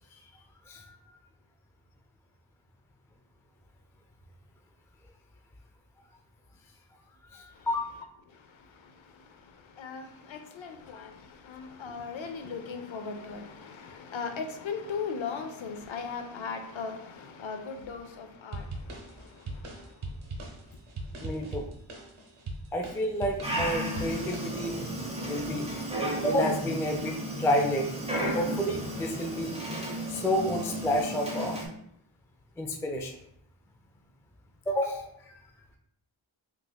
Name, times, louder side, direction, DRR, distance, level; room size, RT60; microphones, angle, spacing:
voice 1, 0.7-1.0 7.3-7.9 21.2-21.7 22.7-24.8 25.3-27.9 28.3-29.5 30.1-31.6 32.6-33.2 34.7-35.4, equal, 5° left, 0.3 m, -30 dB
voice 2, 9.8-11.2 11.4-18.7, left 5 dB, 65° left, 0.6 m, -37 dB
sound 1, 18.5-25.0, right 2 dB, 70° right, 0.8 m, -40 dB
Dog, 23.4-31.7, right 1 dB, 10° right, 0.9 m, -33 dB
3.5 x 3.2 x 2.2 m
wide cardioid pair, 65°, 50 cm